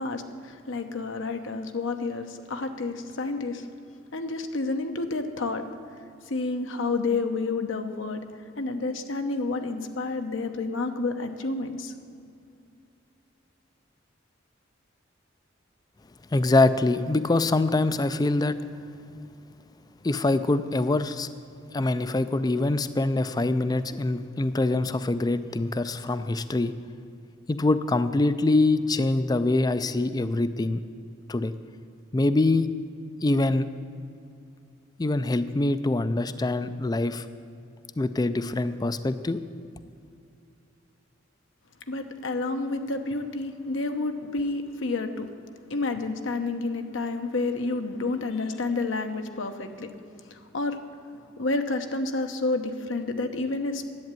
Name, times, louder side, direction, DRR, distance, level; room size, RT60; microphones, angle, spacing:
voice 1, 0.0-3.6 4.1-5.6 6.3-8.2 8.6-11.9 41.9-45.3 45.7-49.9 50.3-50.8 51.4-53.9, left 3 dB, 70° left, 6 dB, 0.9 m, -29 dB
voice 2, 16.3-18.6 20.0-21.3 21.7-26.7 27.5-30.8 31.3-31.5 32.1-32.7 33.2-33.7 35.0-37.3 38.0-39.4, left 2 dB, 20° left, 13 dB, 0.4 m, -24 dB
11.0 x 8.5 x 9.0 m, 2.5 s
head